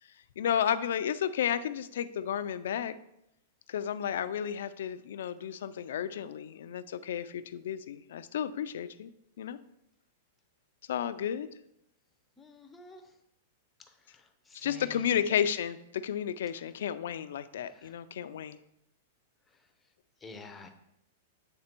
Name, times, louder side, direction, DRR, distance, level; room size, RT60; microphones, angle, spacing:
voice 1, 0.4-3.0 3.7-9.1 9.4-9.6 10.9-11.5 14.6-18.6, left 9 dB, 75° left, 13 dB, 0.4 m, -32 dB
voice 2, 12.4-13.0 14.1-15.1 17.6-18.0 20.2-20.7, left 4 dB, 10° left, 6 dB, 0.6 m, -50 dB
8.8 x 3.3 x 4.4 m, 0.80 s
supercardioid pair, 160°, 0 cm